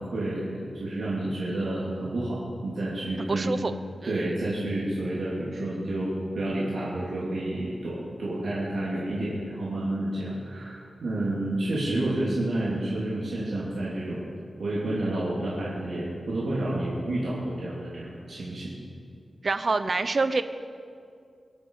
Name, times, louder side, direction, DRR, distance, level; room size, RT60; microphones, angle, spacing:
voice 1, 0.0-3.5 4.0-14.3 14.6-18.8, right 1 dB, 70° right, -7 dB, 3.1 m, -30 dB
voice 2, 3.2-3.7 4.0-4.2 19.4-20.4, right 3 dB, 40° right, 11 dB, 0.7 m, -26 dB
23.0 x 11.0 x 4.9 m, 2.3 s
wide cardioid pair, 165°, 0 cm